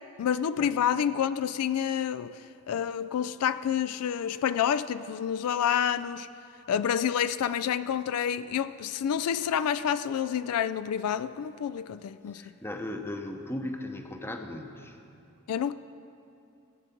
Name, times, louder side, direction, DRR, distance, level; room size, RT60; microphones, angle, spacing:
voice 1, 0.2-2.4 2.7-6.3 6.7-12.4 15.5-15.7, left 8 dB, 80° left, 0.3 m, -28 dB
voice 2, 12.3-15.0, left 1 dB, 10° left, 0.7 m, -37 dB
15.5 x 8.3 x 5.9 m
head